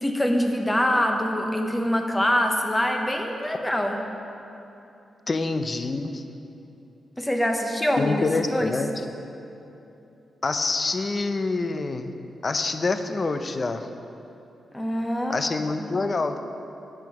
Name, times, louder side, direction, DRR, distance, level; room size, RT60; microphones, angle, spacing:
voice 1, 0.0-4.0 7.2-8.7 14.7-15.9, equal, 10° left, 3 dB, 1.0 m, -25 dB
voice 2, 5.3-6.2 8.0-8.9 10.4-12.1 12.4-13.9 15.3-16.4, left 3 dB, 35° left, 8 dB, 0.5 m, -26 dB
9.0 x 7.2 x 6.0 m, 2.9 s
cardioid pair, 105°, 0 cm